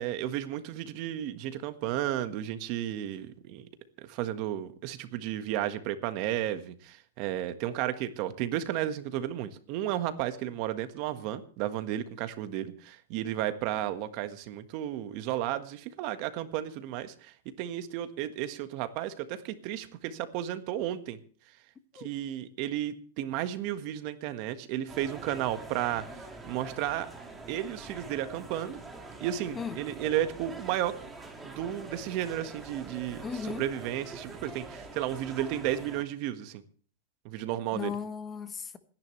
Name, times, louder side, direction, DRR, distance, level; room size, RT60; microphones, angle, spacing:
voice 1, 0.0-3.7 4.0-21.2 21.9-27.1 27.5-28.8 29.2-30.9 31.4-36.6 37.2-37.9, right 12 dB, 40° right, 1.5 m, -33 dB
sound 1, 24.9-36.0, right 2 dB, 10° right, 2.0 m, -45 dB
voice 2, 29.5-29.9 33.2-33.7 37.7-38.8, left 6 dB, 15° left, 1.2 m, -36 dB
26.5 x 10.5 x 3.2 m
supercardioid pair, 155°, 0 cm